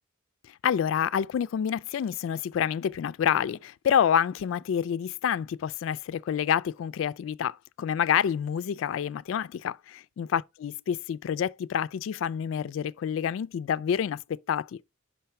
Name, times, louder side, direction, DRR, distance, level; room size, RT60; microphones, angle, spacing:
voice 1, 0.6-14.7, left 8 dB, 70° left, 0.3 m, -28 dB
5.7 x 5.6 x 4.3 m
head